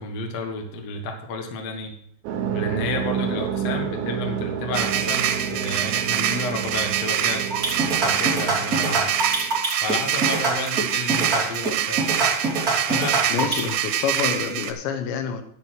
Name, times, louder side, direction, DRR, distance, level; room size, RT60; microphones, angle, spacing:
voice 1, 0.0-1.9 2.5-7.5 7.8-9.1 9.8-12.1 12.9-13.7, left 3 dB, 55° left, 3 dB, 1.8 m, -31 dB
sound 1, 2.2-9.6, right 8 dB, 70° right, 2.4 m, -30 dB
sound 2, 4.7-14.7, right 10 dB, 90° right, 3.3 m, -25 dB
sound 3, 7.5-13.7, right 3 dB, 20° right, 3.0 m, -24 dB
voice 2, 13.3-15.4, left 7 dB, 75° left, 7 dB, 3.1 m, -27 dB
11.0 x 8.6 x 4.7 m, 0.67 s
omnidirectional pair, 5.4 m